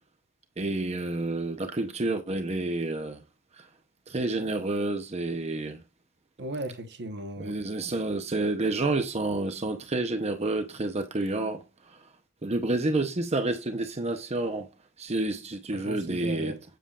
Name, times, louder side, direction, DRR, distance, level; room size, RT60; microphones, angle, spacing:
voice 1, 0.6-3.2 3.5-3.7 4.1-5.8 7.4-12.1 12.4-14.7 15.0-16.6, right 2 dB, 30° right, 0.8 m, -29 dB
voice 2, 6.4-7.6 15.7-16.6, right 1 dB, 55° right, 1.1 m, -37 dB
7.7 x 6.9 x 2.4 m
head